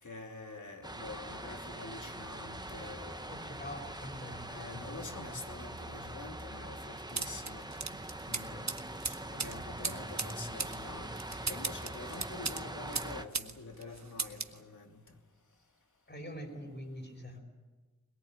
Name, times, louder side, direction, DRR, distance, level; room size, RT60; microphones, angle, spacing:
voice 1, 0.0-3.7 4.3-7.7 8.2-15.2, left 3 dB, 80° left, 2 dB, 2.8 m, -47 dB
sound 1, 0.8-13.3, right 1 dB, 15° right, 1.0 m, -43 dB
voice 2, 3.3-5.4 16.1-17.4, equal, 35° left, 4 dB, 5.3 m, -45 dB
sound 2, 7.2-13.5 13.8-14.6, right 4 dB, 65° right, 1.2 m, -38 dB
22.5 x 21.0 x 8.9 m, 1.3 s
wide cardioid pair, 75°, 30 cm